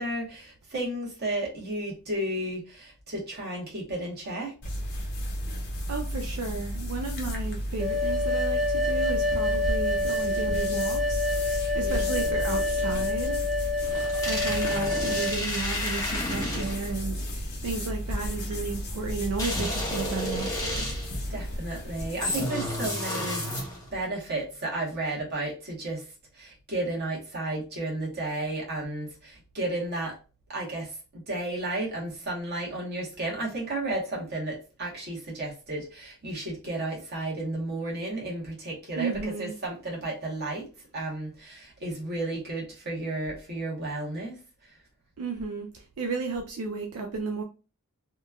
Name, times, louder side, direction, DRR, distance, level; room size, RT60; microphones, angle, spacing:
voice 1, 0.0-4.5 11.8-12.1 21.3-23.4 23.9-26.0 26.3-30.2 30.5-39.1 39.4-40.7 40.9-44.4, right 2 dB, 45° right, 1.0 m, -33 dB
sound 1, 4.6-22.4, equal, 50° left, 0.7 m, -33 dB
voice 2, 5.5-11.3 11.7-13.4 14.3-20.9 39.0-39.5 45.2-47.4, right 4 dB, 75° right, 0.4 m, -33 dB
sound 2, 7.8-15.4, left 2 dB, ahead, 0.3 m, -27 dB
sound 3, 13.8-17.0 19.4-21.2 22.2-24.0, left 1 dB, 15° left, 0.8 m, -32 dB
2.9 x 2.2 x 2.2 m
head